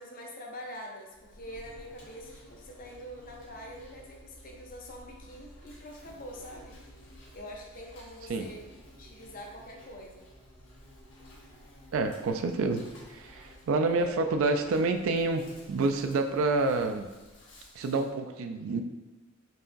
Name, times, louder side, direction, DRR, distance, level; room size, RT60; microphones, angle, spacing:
voice 1, 0.0-6.8 7.3-8.7 9.0-10.3 13.7-14.2, equal, 40° left, 0 dB, 0.6 m, -45 dB
Insect, 1.1-18.1, equal, 65° left, 1.1 m, -53 dB
voice 2, 11.9-12.8 13.1-17.1 17.7-18.8, right 3 dB, 75° right, 6 dB, 0.3 m, -28 dB
4.6 x 2.9 x 2.5 m, 1.2 s
head